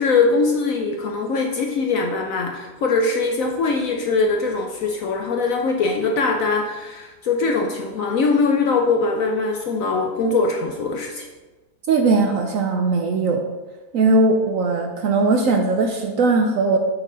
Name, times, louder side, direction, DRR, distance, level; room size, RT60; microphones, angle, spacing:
voice 1, 0.0-11.3, left 4 dB, 65° left, 2 dB, 0.8 m, -21 dB
voice 2, 11.9-13.5 13.9-16.8, right 3 dB, 65° right, 3 dB, 0.8 m, -19 dB
8.1 x 4.4 x 3.8 m, 1.2 s
omnidirectional pair, 1.9 m